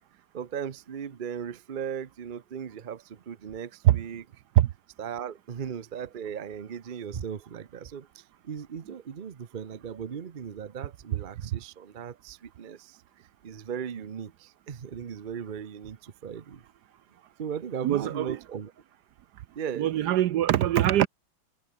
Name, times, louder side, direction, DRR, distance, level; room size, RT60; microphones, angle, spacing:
voice 1, 0.3-4.3 5.0-13.0 13.4-16.6 17.4-18.7 19.5-19.9, right 7 dB, 50° right, 0.6 m, -37 dB
voice 2, 17.8-18.4 19.8-21.1, right 13 dB, 65° right, 1.1 m, -22 dB
omnidirectional pair, 2.1 m